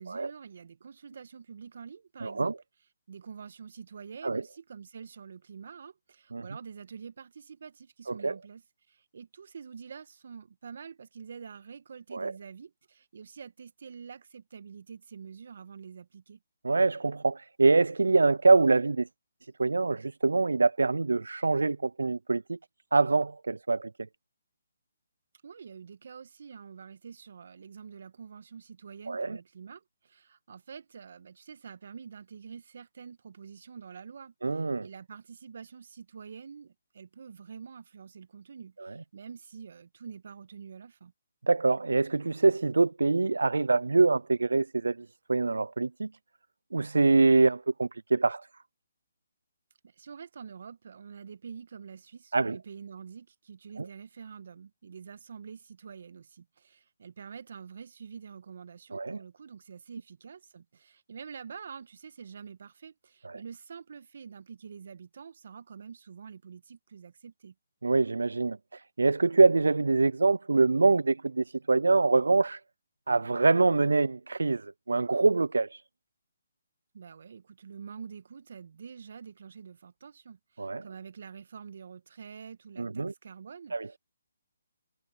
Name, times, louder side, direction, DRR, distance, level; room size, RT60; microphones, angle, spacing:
voice 1, 0.0-2.5 3.1-16.4 25.4-41.1 49.8-67.5 76.9-84.0, right 6 dB, 60° right, 1.7 m, -47 dB
voice 2, 2.2-2.5 4.2-4.4 6.3-6.4 8.2-8.3 12.1-12.3 16.6-19.1 19.6-22.6 22.9-23.9 29.1-29.4 34.4-34.9 41.5-46.1 46.7-48.5 52.3-52.6 53.8-53.9 58.9-59.2 63.2-63.3 67.8-72.6 73.1-75.8 80.6-80.8 82.8-83.1 83.7-83.9, right 3 dB, 80° right, 0.5 m, -25 dB
figure-of-eight pair, 145°, 0 cm